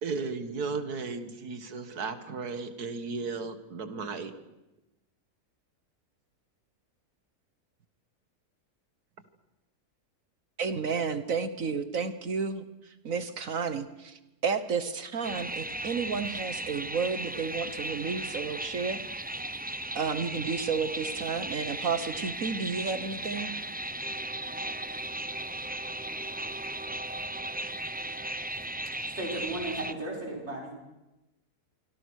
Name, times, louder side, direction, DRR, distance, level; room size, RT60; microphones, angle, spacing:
voice 1, 0.0-4.3, right 4 dB, 85° right, 10 dB, 2.2 m, -35 dB
voice 2, 10.6-12.6 13.0-19.2 19.9-23.5, right 5 dB, 60° right, 12 dB, 1.6 m, -32 dB
sound 1, 15.2-29.9, right 1 dB, 10° right, 0.4 m, -36 dB
voice 3, 29.1-30.7, right 2 dB, 45° right, -1 dB, 6.4 m, -35 dB
26.5 x 25.0 x 6.4 m, 1.0 s
omnidirectional pair, 1.6 m